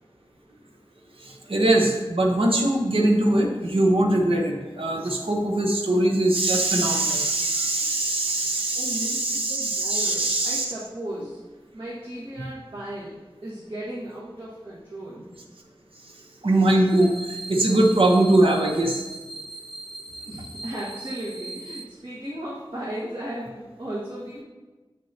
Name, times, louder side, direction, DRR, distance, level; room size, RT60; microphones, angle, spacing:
voice 1, 1.5-10.7 16.4-19.0, right 1 dB, 90° right, 0 dB, 0.9 m, -21 dB
voice 2, 8.7-11.4 11.7-15.3 20.2-24.4, right 1 dB, 70° right, -9 dB, 1.7 m, -36 dB
sound 1, 16.9-21.8, right 2 dB, 5° right, 0.7 m, -39 dB
7.5 x 6.1 x 2.9 m, 1.2 s
wide cardioid pair, 55°, 9 cm